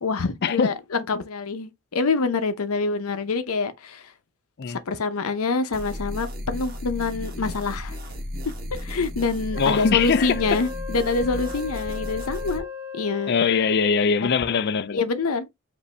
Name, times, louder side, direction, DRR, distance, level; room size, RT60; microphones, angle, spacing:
voice 1, 0.0-4.1 4.7-8.0 8.5-12.7 12.9-13.3 14.9-15.5, left 4 dB, 85° left, 0.7 m, -26 dB
sound 1, 5.7-12.6, left 1 dB, 45° right, 1.1 m, -34 dB
Wind instrument woodwind instrument, 9.5-14.1, left 5 dB, 20° right, 1.3 m, -37 dB
voice 2, 9.6-10.6 13.3-15.0, left 5 dB, 50° left, 0.4 m, -22 dB
5.2 x 2.6 x 3.2 m
head